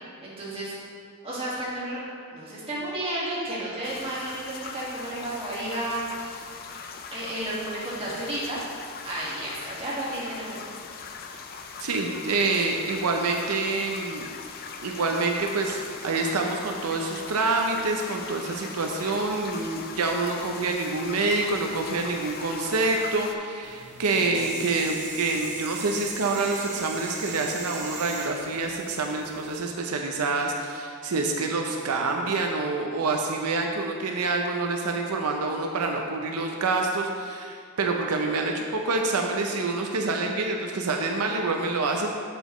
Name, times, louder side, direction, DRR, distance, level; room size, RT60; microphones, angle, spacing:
voice 1, 0.2-0.7 1.2-2.0 2.3-6.4 7.1-8.6 9.0-10.6, right 1 dB, 25° right, -7 dB, 1.8 m, -32 dB
sound 1, 3.8-23.4, left 5 dB, 45° left, 0.4 m, -40 dB
voice 2, 11.8-14.3 14.8-42.1, right 3 dB, 85° right, 2 dB, 0.6 m, -27 dB
sound 2, 23.6-29.6, right 3 dB, 50° right, 1.0 m, -39 dB
7.8 x 7.1 x 3.1 m, 2.2 s
head